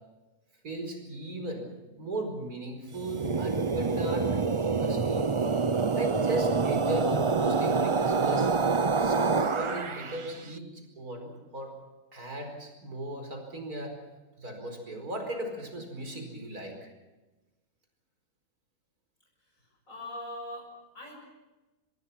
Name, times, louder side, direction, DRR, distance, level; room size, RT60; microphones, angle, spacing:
voice 1, 0.6-5.3 6.0-8.5 8.9-11.8 12.1-14.0 14.4-16.9, right 1 dB, 90° right, 5 dB, 5.4 m, -37 dB
sound 1, 2.9-10.3, right 4 dB, 30° right, 0.5 m, -27 dB
voice 2, 19.4-21.2, left 1 dB, 65° left, 0 dB, 6.7 m, -42 dB
25.5 x 21.5 x 5.9 m, 1.1 s
omnidirectional pair, 1.6 m